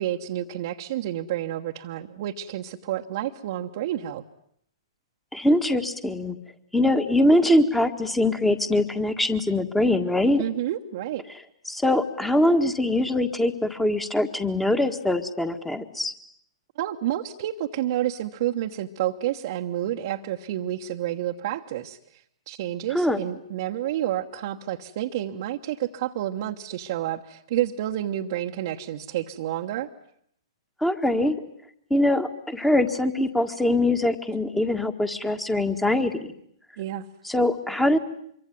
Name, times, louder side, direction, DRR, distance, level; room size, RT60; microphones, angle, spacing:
voice 1, 0.0-4.2 10.4-11.2 16.8-29.9 36.8-37.1, right 12 dB, 50° right, 0 dB, 1.2 m, -29 dB
voice 2, 5.3-6.4 6.7-10.4 11.7-16.1 22.9-23.2 30.8-31.4 31.9-36.3 37.2-38.0, left 1 dB, 5° left, 9 dB, 1.7 m, -23 dB
26.0 x 23.5 x 9.4 m, 0.69 s
figure-of-eight pair, 115°, 3 cm